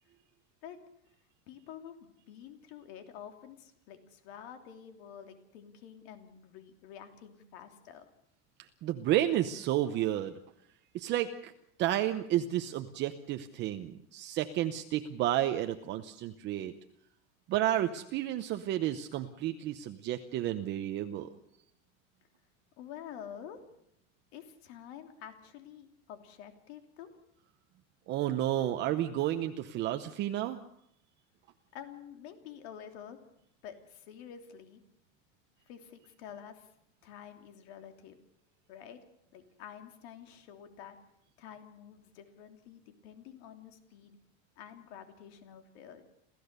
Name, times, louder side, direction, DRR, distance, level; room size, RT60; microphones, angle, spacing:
voice 1, 1.5-8.1 22.8-23.8 24.3-27.2 31.7-33.2 33.6-34.8 35.7-36.7 37.0-38.3 38.7-39.0 39.3-41.0 41.4-44.2 44.6-46.0, left 9 dB, 65° left, 6 dB, 3.1 m, -49 dB
voice 2, 8.8-10.3 10.9-11.5 11.8-16.7 17.5-21.3 28.1-30.6, right 13 dB, 30° right, 7 dB, 0.8 m, -31 dB
27.5 x 15.5 x 6.8 m, 0.74 s
cardioid pair, 170°, 34 cm